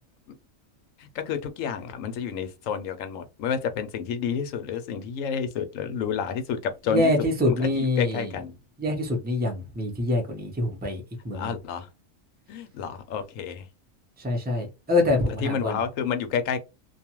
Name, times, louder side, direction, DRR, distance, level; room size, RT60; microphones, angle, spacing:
voice 1, 1.0-7.1 7.5-8.5 11.3-11.9 12.5-13.7 15.4-16.6, left 7 dB, 75° left, 0.9 m, -30 dB
voice 2, 6.9-8.4 8.8-11.6 14.2-15.8, left 2 dB, 10° right, 0.6 m, -25 dB
2.5 x 2.3 x 2.9 m
omnidirectional pair, 1.4 m